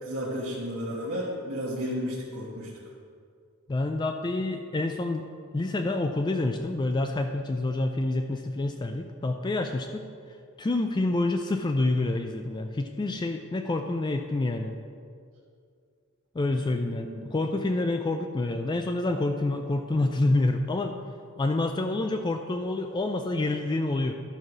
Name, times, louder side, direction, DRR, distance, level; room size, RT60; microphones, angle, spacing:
voice 1, 0.0-2.7 17.0-17.3, equal, 80° right, -6 dB, 1.4 m, -32 dB
voice 2, 3.7-5.3 5.5-10.1 10.6-14.8 16.3-21.0 21.4-24.1, left 2 dB, 20° left, 6 dB, 0.3 m, -27 dB
12.0 x 4.7 x 6.0 m, 2.3 s
head